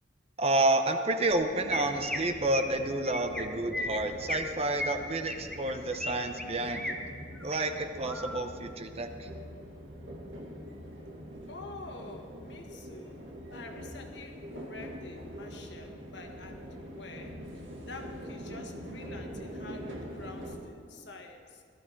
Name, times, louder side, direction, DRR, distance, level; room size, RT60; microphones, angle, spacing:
voice 1, 0.4-6.9 7.4-9.3, right 2 dB, 30° right, 7 dB, 0.8 m, -30 dB
Chirp tweet, 1.3-1.4 1.7-2.2 2.5-2.7 3.1-3.4 3.7-4.4 4.8-6.1 6.4-6.9 7.4-7.6 8.1-8.4, left 1 dB, 5° left, 1.0 m, -35 dB
sound 1, 1.5-20.6, equal, 85° right, 2.1 m, -44 dB
voice 2, 11.5-13.2 13.5-21.6, left 2 dB, 65° left, 3 dB, 1.5 m, -47 dB
17.5 x 12.5 x 4.6 m, 2.2 s
head